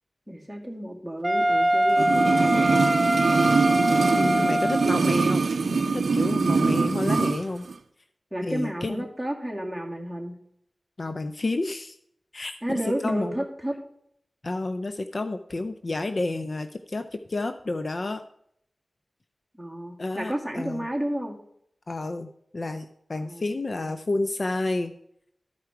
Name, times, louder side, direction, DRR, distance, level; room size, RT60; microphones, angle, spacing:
voice 1, 0.3-3.0 4.3-4.6 8.3-10.3 12.6-13.8 19.6-21.4 23.2-23.5 23.8-23.9, right 1 dB, ahead, 0 dB, 2.1 m, -32 dB
Wind instrument woodwind instrument, 1.2-5.0, equal, 20° right, 0.3 m, -23 dB
sound 1, 1.9-7.4 7.7-7.8, right 4 dB, 85° right, 0.4 m, -23 dB
voice 2, 4.1-7.6 8.4-9.0 11.0-12.0 12.3-12.6 13.0-13.3 14.4-18.2 20.0-20.9 21.9-24.9, left 2 dB, 55° left, 8 dB, 0.5 m, -30 dB
13.0 x 4.8 x 4.6 m, 0.71 s
wide cardioid pair, 65°, 0 cm